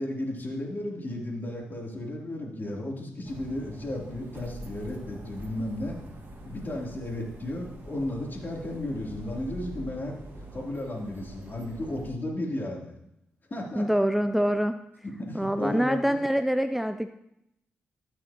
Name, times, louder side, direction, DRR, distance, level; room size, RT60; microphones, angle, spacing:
voice 1, 0.0-6.0 6.4-10.2 10.5-12.9 13.5-13.9 15.3-16.2, left 1 dB, 40° left, -2 dB, 3.2 m, -34 dB
sound 1, 3.2-12.1, right 1 dB, 50° right, 2.3 m, -44 dB
voice 2, 13.8-14.8 15.3-17.1, equal, 5° right, 9 dB, 0.5 m, -25 dB
14.0 x 6.5 x 3.0 m, 0.81 s
hypercardioid pair, 40°, 5 cm